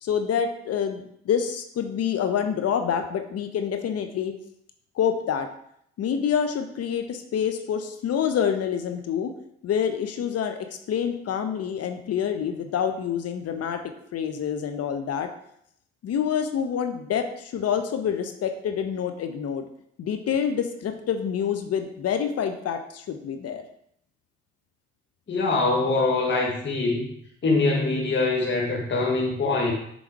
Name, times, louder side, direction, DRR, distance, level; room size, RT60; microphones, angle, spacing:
voice 1, 0.0-4.3 4.9-5.5 6.0-9.3 9.6-10.6 10.9-13.8 14.1-15.3 16.0-19.7 20.0-23.6, left 8 dB, 55° left, 7 dB, 0.9 m, -27 dB
voice 2, 25.3-27.1 27.4-29.7, left 3 dB, 40° left, -1 dB, 1.5 m, -23 dB
7.1 x 4.0 x 4.7 m, 0.71 s
hypercardioid pair, 50°, 29 cm